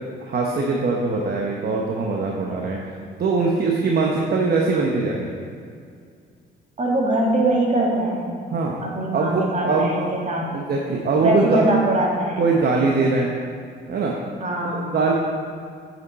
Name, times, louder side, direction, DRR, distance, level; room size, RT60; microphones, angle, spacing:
voice 1, 0.2-2.8 3.2-5.3 8.5-8.7 9.1-10.3 10.5-11.8 12.4-13.4 13.9-14.1 14.6-15.1, right 3 dB, 50° right, -1 dB, 1.0 m, -22 dB
voice 2, 6.8-8.3 8.8-10.6 11.2-12.4 14.4-14.8, right 1 dB, 35° right, -2 dB, 2.0 m, -22 dB
8.5 x 7.3 x 4.2 m, 2.2 s
cardioid pair, 90°, 20 cm